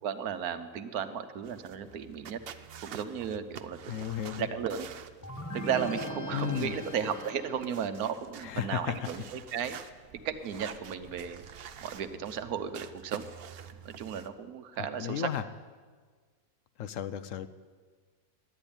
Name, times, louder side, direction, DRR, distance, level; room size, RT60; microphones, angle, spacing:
voice 1, 0.0-2.4 2.8-3.9 4.4-4.9 5.5-9.8 10.2-11.4 11.8-13.3 13.8-15.3, right 8 dB, 80° right, 10 dB, 1.3 m, -34 dB
sound 1, 1.4-14.3, right 8 dB, 55° right, 0.7 m, -48 dB
voice 2, 3.9-4.5 6.3-6.7 8.4-8.9 15.0-15.4 16.8-17.5, left 10 dB, 65° left, 13 dB, 0.9 m, -33 dB
sound 2, 5.2-8.0, equal, 15° left, 0.8 m, -40 dB
11.5 x 8.8 x 9.9 m, 1.5 s
omnidirectional pair, 1.6 m